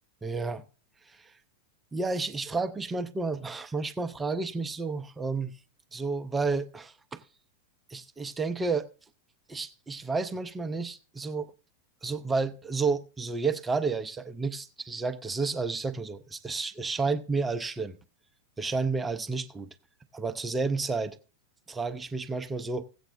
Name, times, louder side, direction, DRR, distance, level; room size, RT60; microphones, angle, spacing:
voice 1, 0.2-0.6 1.0-1.3 1.9-5.5 5.9-7.2 7.9-8.9 9.5-11.5 12.0-18.0 18.6-19.7 20.1-21.2 21.7-22.8, right 4 dB, 15° right, 0.6 m, -31 dB
17.0 x 8.0 x 2.6 m
figure-of-eight pair, 90°, 0 cm